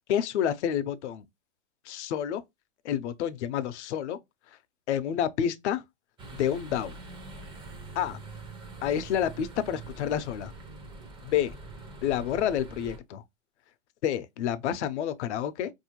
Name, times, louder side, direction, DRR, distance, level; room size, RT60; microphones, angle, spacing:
voice 1, 0.1-1.2 1.9-2.4 2.8-4.2 4.9-5.8 6.3-7.0 8.0-8.2 8.8-10.5 11.2-11.5 12.0-13.2 14.0-15.7, left 9 dB, 65° left, 0.6 m, -29 dB
sound 1, 6.2-13.0, right 3 dB, 15° right, 0.5 m, -44 dB
4.3 x 2.7 x 2.9 m
hypercardioid pair, 135°, 37 cm